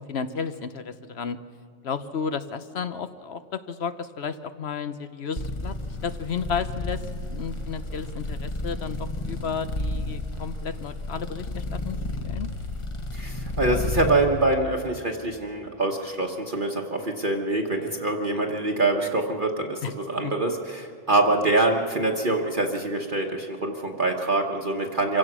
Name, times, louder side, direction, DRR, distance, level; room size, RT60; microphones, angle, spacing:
voice 1, 0.1-1.4 1.8-5.7 6.0-12.0 12.2-12.5 19.8-19.9 20.2-20.3, left 6 dB, 55° left, 11 dB, 1.0 m, -32 dB
sound 1, 5.4-14.3, left 2 dB, 25° left, 1.2 m, -32 dB
voice 2, 13.1-25.2, right 2 dB, 40° right, 1 dB, 1.3 m, -25 dB
26.0 x 16.5 x 6.1 m, 2.3 s
omnidirectional pair, 1.4 m